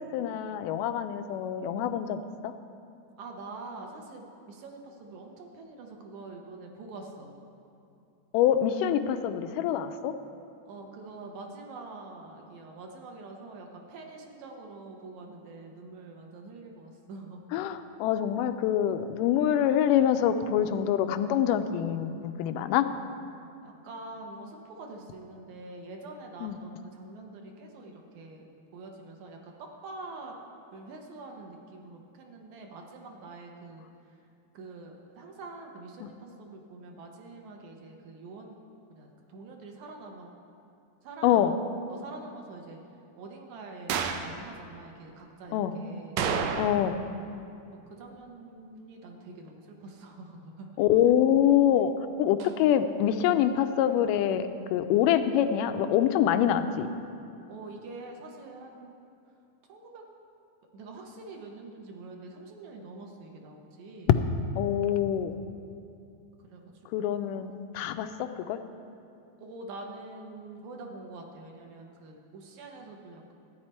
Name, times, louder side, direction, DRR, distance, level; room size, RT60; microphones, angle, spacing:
voice 1, 0.0-2.5 8.3-10.2 17.5-22.9 26.4-26.6 36.0-36.1 41.2-41.6 45.5-45.8 46.6-47.0 50.8-51.9 52.2-56.9 64.6-65.3 66.9-68.6, left 10 dB, 90° left, 9 dB, 2.2 m, -25 dB
voice 2, 3.2-7.3 10.7-17.4 23.6-28.5 28.7-30.4 30.7-33.8 34.5-38.6 38.9-40.3 41.0-41.5 41.9-42.8 43.2-47.0 47.7-50.7 57.5-59.0 59.7-60.0 60.7-64.1 66.4-66.6 67.0-67.2 69.4-73.3, right 3 dB, 70° right, 1 dB, 2.1 m, -45 dB
sound 1, 43.9-44.3 46.2-47.0 47.3-47.4 52.4-52.5, right 6 dB, 90° right, 2.3 m, -30 dB
13.5 x 9.4 x 4.3 m, 2.7 s
omnidirectional pair, 3.7 m